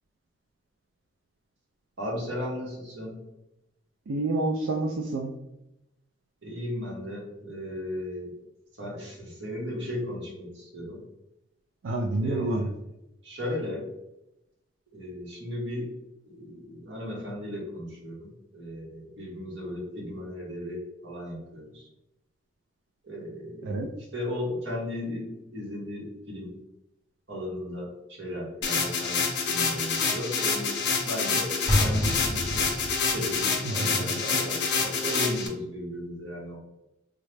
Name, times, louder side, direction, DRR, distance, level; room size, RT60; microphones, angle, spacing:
voice 1, 2.0-3.2 6.4-8.3 8.8-11.0 12.2-12.7 13.2-13.9 14.9-15.9 16.3-18.3 18.5-21.9 23.0-23.8 24.1-26.5 27.3-32.7 33.0-36.6, left 1 dB, 60° right, -4 dB, 1.3 m, -36 dB
voice 2, 4.1-5.3 11.8-12.7 23.7-23.9, right 2 dB, 75° right, 2 dB, 0.4 m, -27 dB
sound 1, 28.6-35.5, left 5 dB, 60° left, 0.6 m, -27 dB
Explosion, 31.7-33.4, left 1 dB, 15° left, 0.7 m, -27 dB
3.6 x 2.2 x 3.2 m, 0.91 s
head